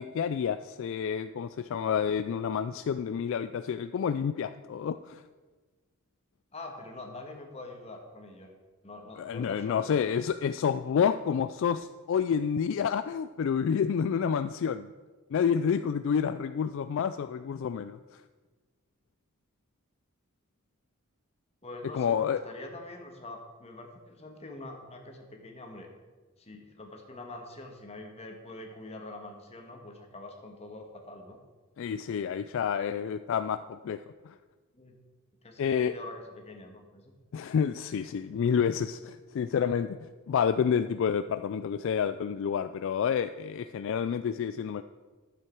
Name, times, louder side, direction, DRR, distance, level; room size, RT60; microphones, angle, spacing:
voice 1, 0.0-5.2 9.2-14.9 15.3-18.0 21.9-22.4 31.8-34.3 35.6-35.9 37.3-39.9 40.3-44.8, left 7 dB, 60° left, 11 dB, 0.3 m, -29 dB
voice 2, 6.5-8.5 8.8-10.1 21.6-25.9 26.4-31.4 34.7-34.9 35.4-37.1, left 2 dB, 30° left, 2 dB, 1.6 m, -45 dB
11.5 x 7.8 x 4.6 m, 1.3 s
head